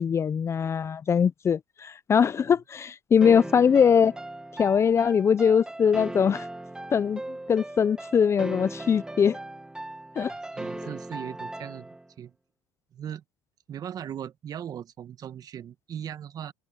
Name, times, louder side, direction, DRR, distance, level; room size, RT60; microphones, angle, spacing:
voice 1, 0.0-4.2 4.6-6.5 6.9-7.2 7.5-9.4 10.2-10.3, left 7 dB, 30° left, 0.5 m, -22 dB
sound 1, 3.2-12.1, right 2 dB, 10° right, 1.3 m, -38 dB
voice 2, 10.5-11.9 12.2-12.3 12.9-13.2 13.7-16.5, right 9 dB, 40° right, 1.4 m, -38 dB
open air
supercardioid pair, 95°, 9 cm